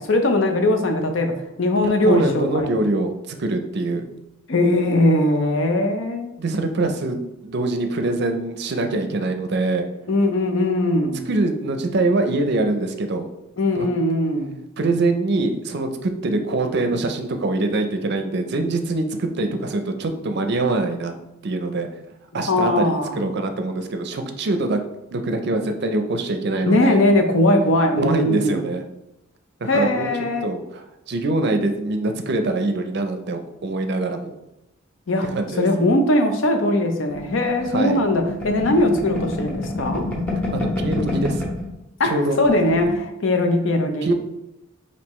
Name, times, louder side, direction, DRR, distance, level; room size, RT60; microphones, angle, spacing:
voice 1, 0.0-1.3 1.6-2.7 4.5-6.3 10.1-11.3 13.6-14.5 22.5-23.3 26.6-28.6 29.7-30.5 35.1-35.3 35.6-40.1 42.0-44.1, left 1 dB, 65° left, 5 dB, 0.6 m, -20 dB
voice 2, 1.8-4.1 6.4-9.9 11.3-13.3 13.7-13.9 14.8-21.1 21.4-21.9 22.3-24.8 25.1-27.0 28.0-28.8 29.6-30.1 30.4-34.3 35.2-35.7 37.7-38.0 40.5-41.4 42.0-42.4 44.0-44.1, right 2 dB, 55° right, 6 dB, 0.5 m, -24 dB
sound 1, 37.1-41.7 42.0-42.1 42.4-43.0, left 2 dB, 5° left, 0.9 m, -28 dB
5.3 x 2.7 x 3.1 m, 0.91 s
head